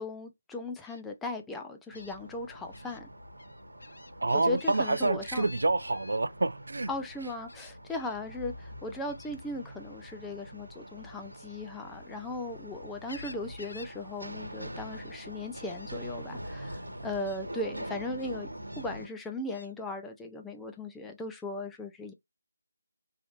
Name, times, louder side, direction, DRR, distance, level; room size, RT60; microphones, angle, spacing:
voice 1, 0.0-3.1 4.3-5.5 6.9-18.5 18.8-22.1, left 2 dB, 5° left, 0.4 m, -38 dB
Gull seagull, 0.8-1.0 1.9-2.2 2.7-3.0 3.4-6.2 7.5-8.2 9.1-9.4 11.2-12.5 12.8-14.0 14.2-14.5 14.8-15.3 15.7-15.9 16.7-16.8 17.2-17.4 18.2-18.9 19.5-19.7, left 2 dB, 65° left, 0.5 m, -51 dB
sound 1, 1.9-19.1, equal, 85° right, 1.0 m, -44 dB
voice 2, 4.2-6.9, right 2 dB, 65° right, 0.4 m, -27 dB
3.3 x 2.5 x 2.4 m
figure-of-eight pair, 155°, 0 cm